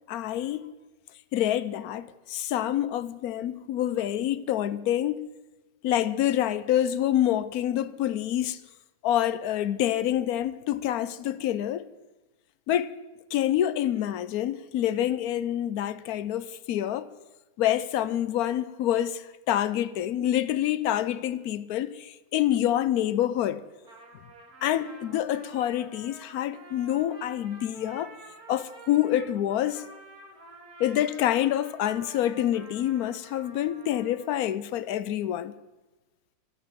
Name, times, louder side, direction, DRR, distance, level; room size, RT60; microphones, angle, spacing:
voice 1, 0.1-0.7 1.3-5.2 5.8-8.6 9.0-11.9 12.7-12.9 13.3-17.1 17.6-23.6 24.6-28.1 28.5-29.8 30.8-35.5, left 12 dB, 65° left, 1.0 m, -27 dB
Trumpet, 23.7-34.5, right 1 dB, 55° right, 3.0 m, -49 dB
12.5 x 11.0 x 7.6 m
omnidirectional pair, 2.0 m